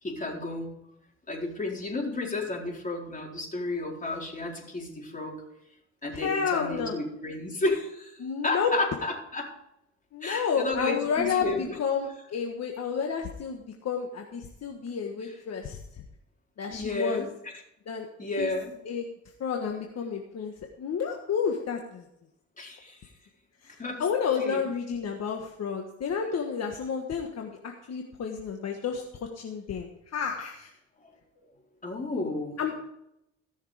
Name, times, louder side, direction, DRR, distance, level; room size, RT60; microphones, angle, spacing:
voice 1, 0.0-0.8 1.3-5.4 6.0-9.5 10.2-11.7 16.7-17.3 18.2-18.7 22.6-23.1 23.8-24.0 24.4-24.7 31.0-31.1 31.8-32.6, left 2 dB, 25° left, -1 dB, 4.3 m, -32 dB
voice 2, 6.1-6.9 8.2-8.7 10.1-15.8 16.6-17.3 17.9-18.1 18.4-18.5 18.8-19.0 19.4-20.5 20.8-22.0 23.6-30.7 32.6-32.8, left 6 dB, 60° left, 2 dB, 1.5 m, -31 dB
17.0 x 6.5 x 5.0 m, 0.81 s
cardioid pair, 90°, 30 cm